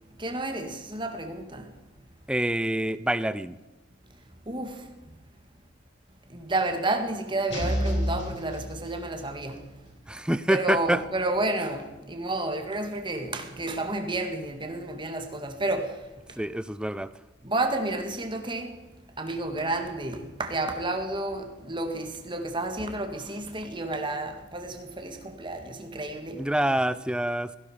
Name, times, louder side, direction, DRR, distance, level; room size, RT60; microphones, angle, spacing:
voice 1, 0.2-1.7 4.5-5.2 6.3-9.9 10.5-16.4 17.4-18.7 19.2-26.5, right 2 dB, 25° right, 1.9 m, -31 dB
voice 2, 2.3-3.6 10.1-11.0 16.3-17.1 26.3-27.6, right 1 dB, 5° right, 0.5 m, -26 dB
sound 1, 7.5-9.4, equal, 65° left, 5.2 m, -30 dB
17.0 x 16.0 x 5.1 m
head